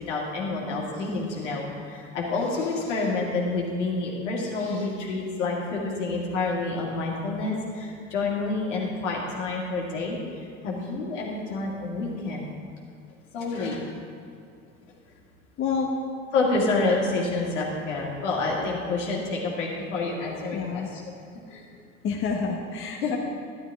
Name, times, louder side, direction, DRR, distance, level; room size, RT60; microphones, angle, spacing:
voice 1, 0.0-10.2 10.6-12.5 13.3-13.8 16.3-21.0 21.5-21.6 23.0-23.2, left 3 dB, 70° left, -2 dB, 2.3 m, -28 dB
voice 2, 15.6-15.9 20.5-20.9 22.0-23.2, left 5 dB, 35° left, 0 dB, 1.2 m, -28 dB
11.5 x 11.0 x 3.6 m, 2.5 s
figure-of-eight pair, 75°, 38 cm